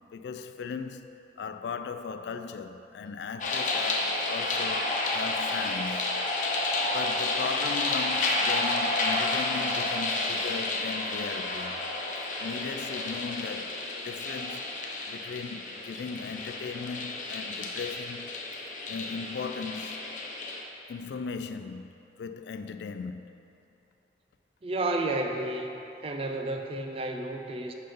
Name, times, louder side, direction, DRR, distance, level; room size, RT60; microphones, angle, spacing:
voice 1, 0.1-1.1 1.4-6.3 6.9-11.8 12.4-14.8 15.1-18.3 18.9-20.2 20.9-21.9 22.2-23.3, left 5 dB, 80° left, 0.3 m, -37 dB
sound 1, 3.4-20.6, left 2 dB, 45° left, 0.7 m, -31 dB
voice 2, 24.6-25.8 26.0-27.7, right 2 dB, 35° right, 0.4 m, -31 dB
5.6 x 5.4 x 5.2 m
head